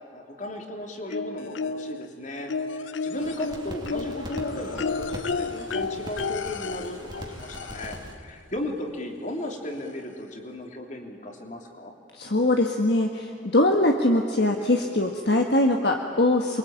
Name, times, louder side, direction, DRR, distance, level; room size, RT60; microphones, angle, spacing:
voice 1, 0.1-11.9, left 1 dB, 40° left, 3 dB, 3.3 m, -36 dB
sound 1, 1.1-2.1 2.5-8.2 9.4-9.5 9.9-10.0, left 4 dB, 75° left, 0.7 m, -32 dB
sound 2, 3.1-8.1, right 1 dB, 25° right, 2.6 m, -41 dB
voice 2, 12.1-16.6, left 1 dB, 60° left, 3 dB, 1.6 m, -22 dB
28.5 x 23.0 x 9.0 m, 2.6 s
head